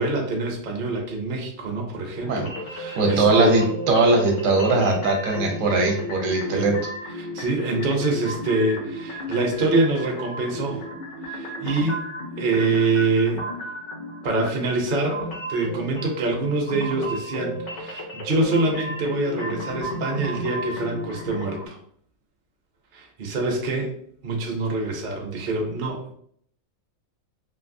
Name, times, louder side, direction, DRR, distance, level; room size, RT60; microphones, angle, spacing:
voice 1, 0.0-3.6 6.5-6.7 7.2-10.8 11.2-12.1 12.4-13.5 14.2-15.2 15.5-21.8 22.9-23.9 24.2-26.1, right 2 dB, 50° right, 1 dB, 0.6 m, -25 dB
sound 1, 2.4-21.7, equal, 55° left, 0.5 m, -34 dB
voice 2, 3.0-6.7, right 3 dB, 70° right, 2 dB, 1.0 m, -20 dB
3.2 x 2.6 x 2.6 m, 0.64 s
omnidirectional pair, 1.5 m